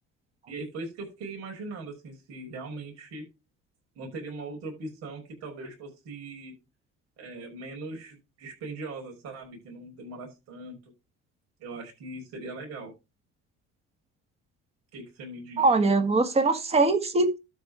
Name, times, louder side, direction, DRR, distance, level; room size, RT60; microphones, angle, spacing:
voice 1, 0.5-3.3 4.0-6.5 7.2-10.9 11.6-12.9 14.9-15.8, right 2 dB, 60° right, 5.8 m, -40 dB
voice 2, 15.6-17.4, right 3 dB, 20° right, 1.9 m, -22 dB
12.5 x 5.4 x 5.0 m
cardioid pair, 135°, 29 cm